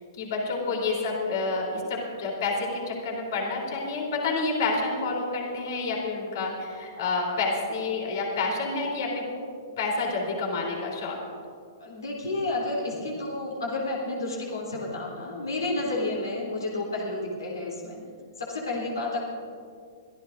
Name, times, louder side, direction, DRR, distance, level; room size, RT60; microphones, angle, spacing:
voice 1, 0.2-9.2 9.8-11.2, left 3 dB, 60° left, -1 dB, 3.4 m, -29 dB
voice 2, 11.8-18.0 18.4-19.2, left 2 dB, 90° left, -3 dB, 3.3 m, -31 dB
24.5 x 13.5 x 2.6 m, 2.3 s
hypercardioid pair, 125°, 2 cm